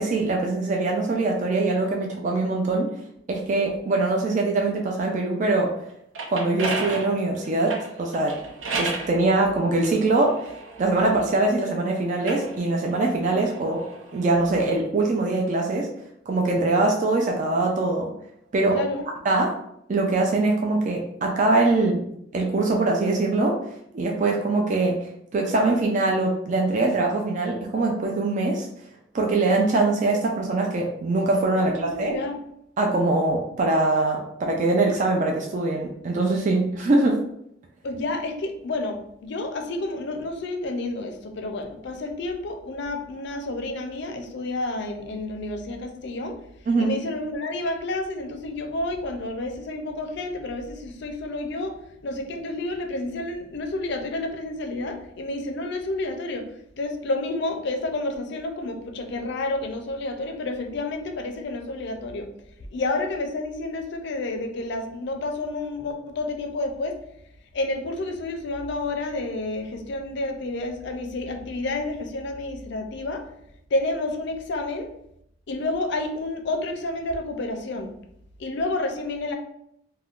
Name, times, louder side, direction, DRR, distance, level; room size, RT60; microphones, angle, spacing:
voice 1, 0.0-2.9 3.3-5.7 6.3-8.4 8.8-10.5 10.8-15.9 16.3-18.1 18.5-18.8 19.2-19.6 19.9-21.9 22.3-23.6 23.9-28.7 29.1-32.2 32.8-37.2 46.7-47.0, right 2 dB, 40° right, 1 dB, 0.3 m, -23 dB
sound 1, 5.9-9.1 9.9-11.6 12.1-14.4, right 3 dB, 80° right, 0.6 m, -33 dB
voice 2, 18.7-19.0 21.7-21.8 31.6-32.4 37.8-46.4 46.8-51.7 52.0-56.5 56.8-62.3 62.7-67.0 67.5-73.2 73.7-74.9 75.5-77.9 78.4-79.3, left 2 dB, 60° left, 5 dB, 0.4 m, -30 dB
3.5 x 2.2 x 2.4 m, 0.75 s
head